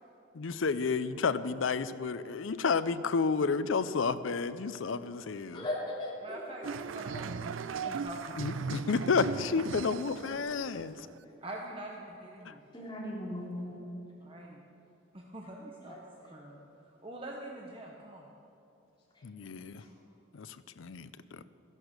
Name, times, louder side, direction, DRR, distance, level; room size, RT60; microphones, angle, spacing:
voice 1, 0.3-5.6 8.4-11.0 12.5-12.6 19.2-19.8 20.3-21.1 21.4-21.5, left 5 dB, 85° left, 14 dB, 0.5 m, -31 dB
voice 2, 5.5-6.7 7.1-7.2 8.0-8.1 12.7-13.9 15.8-16.5 19.8-19.9, left 1 dB, 25° left, -5 dB, 3.1 m, -39 dB
voice 3, 6.2-8.4 11.4-12.6 14.2-14.6 15.1-16.0 16.3-16.6 17.0-18.3, right 1 dB, 30° right, -1 dB, 0.9 m, -44 dB
sound 1, 6.6-11.2, right 5 dB, 85° right, 0.4 m, -38 dB
13.5 x 11.0 x 6.6 m, 2.9 s
head